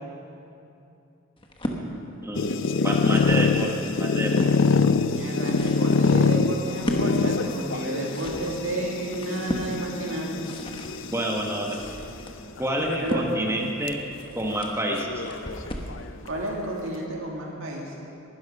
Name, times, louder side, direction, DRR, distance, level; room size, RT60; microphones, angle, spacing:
sound 1, 1.4-1.8 2.6-3.5 3.9-4.6 5.2-16.0, equal, 25° left, 1.3 m, -35 dB
voice 1, 2.2-4.5 11.1-11.9 12.6-14.0 14.3-15.2, right 1 dB, 10° right, 0 dB, 1.5 m, -28 dB
sound 2, 2.3-11.8 12.6-13.1 13.5-13.6 13.9-14.0 14.9-16.0, left 4 dB, 60° left, 0.5 m, -25 dB
voice 2, 5.1-10.4 13.0-13.2 13.6-13.7 16.3-18.0, right 1 dB, 70° right, -1 dB, 2.1 m, -31 dB
19.5 x 12.0 x 5.5 m, 2.7 s
head